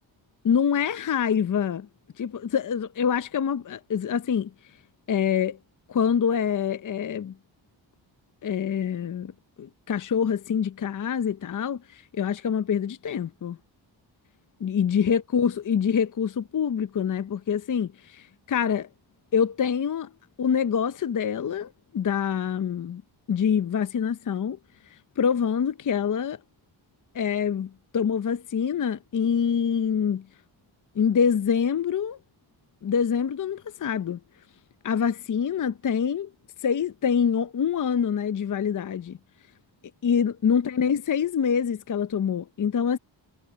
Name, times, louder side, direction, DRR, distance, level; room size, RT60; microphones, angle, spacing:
voice 1, 0.4-1.9 2.2-4.5 5.1-5.6 5.9-7.4 8.4-9.3 9.6-13.6 14.6-18.9 19.3-20.1 20.4-23.0 23.3-24.6 24.9-26.4 27.1-30.3 30.9-32.2 32.8-34.2 34.8-36.3 36.6-39.2 40.0-43.0, left 7 dB, 40° left, 0.7 m, -25 dB
cardioid pair, 80°, 46 cm